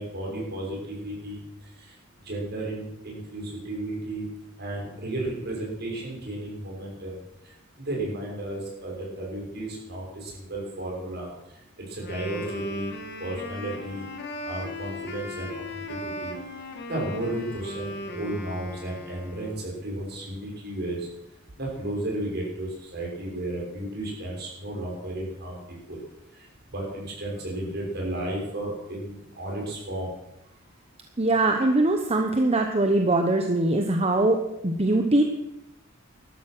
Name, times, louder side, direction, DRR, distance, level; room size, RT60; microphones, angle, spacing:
voice 1, 0.0-1.4 1.8-1.9 2.2-4.2 4.6-7.1 7.8-11.3 11.8-12.9 13.2-14.0 14.4-16.3 16.9-21.1 21.6-26.0 26.3-30.1, right 1 dB, 55° right, -2 dB, 6.3 m, -33 dB
Wind instrument woodwind instrument, 12.0-19.7, left 1 dB, 55° left, 2.3 m, -37 dB
voice 2, 31.2-34.4 34.6-35.2, right 2 dB, 30° right, 4 dB, 1.0 m, -22 dB
13.5 x 12.5 x 6.2 m, 0.87 s
head